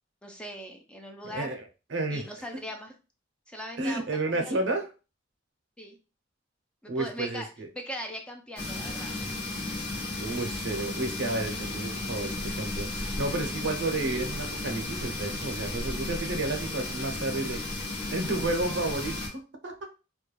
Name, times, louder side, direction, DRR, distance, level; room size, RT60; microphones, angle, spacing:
voice 1, 0.2-1.6 2.1-2.9 3.5-4.1 4.4-4.6 5.8-6.0 6.8-7.5 7.7-9.2 10.0-10.1, equal, 5° left, 3 dB, 0.4 m, -40 dB
voice 2, 1.3-1.6 1.9-2.2 3.8-4.9 6.9-7.7 10.2-17.6 18.1-19.8, right 2 dB, 70° right, 4 dB, 0.6 m, -31 dB
sound 1, 8.6-19.3, left 2 dB, 60° left, 0.9 m, -34 dB
2.3 x 2.1 x 3.0 m, 0.31 s
head